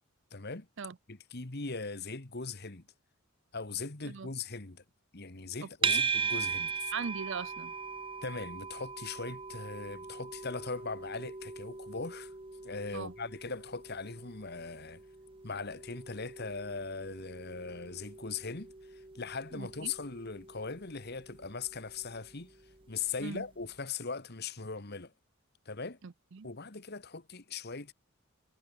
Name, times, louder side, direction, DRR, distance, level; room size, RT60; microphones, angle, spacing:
voice 1, 0.3-0.7 1.1-2.9 3.5-4.8 5.1-6.9 8.2-12.3 12.6-15.0 15.4-22.6 22.9-25.1 25.7-26.0 26.4-27.9, left 4 dB, 50° left, 1.7 m, -40 dB
sound 1, 5.8-23.0, right 5 dB, 25° right, 1.2 m, -39 dB
voice 2, 6.9-7.7 12.9-13.1 19.5-19.9 23.2-23.4 26.0-26.5, right 5 dB, 60° right, 0.6 m, -40 dB
head